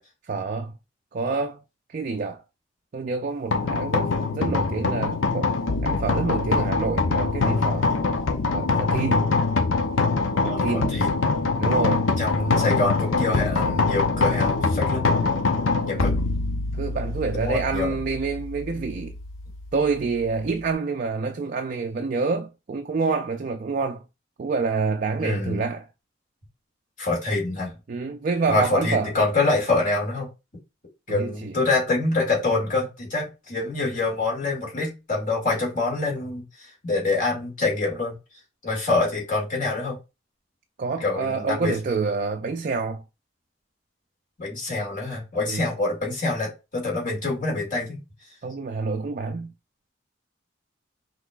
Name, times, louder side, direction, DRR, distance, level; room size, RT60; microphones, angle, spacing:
voice 1, 0.3-0.7 1.1-1.6 1.9-2.4 2.9-5.5 5.8-7.9 8.5-9.3 10.4-11.0 11.6-12.1 16.0-16.1 16.7-19.2 19.7-24.0 24.4-25.9 27.9-29.1 31.1-31.6 40.8-43.0 45.5-45.7 48.4-49.5, right 4 dB, 45° right, 0.4 m, -27 dB
sound 1, 3.5-20.7, left 3 dB, 80° left, 0.7 m, -24 dB
voice 2, 10.4-11.2 12.2-15.1 15.8-16.1 17.3-17.9 25.2-25.6 27.0-27.7 28.5-30.3 31.1-36.4 36.8-38.1 38.6-40.0 41.0-41.7 44.4-48.0, left 3 dB, 40° left, 2.3 m, -25 dB
5.8 x 3.0 x 2.4 m
head